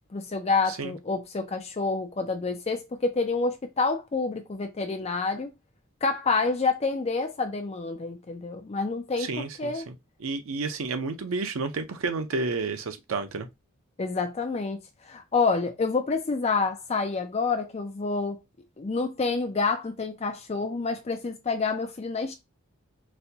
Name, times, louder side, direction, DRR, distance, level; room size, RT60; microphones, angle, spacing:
voice 1, 0.1-5.5 6.0-9.3 9.6-9.8 14.0-14.8 15.1-18.4 18.8-22.3, left 4 dB, 30° left, 0.4 m, -28 dB
voice 2, 9.2-9.9 10.2-13.5, right 3 dB, 75° right, 0.6 m, -31 dB
4.1 x 2.2 x 2.7 m
head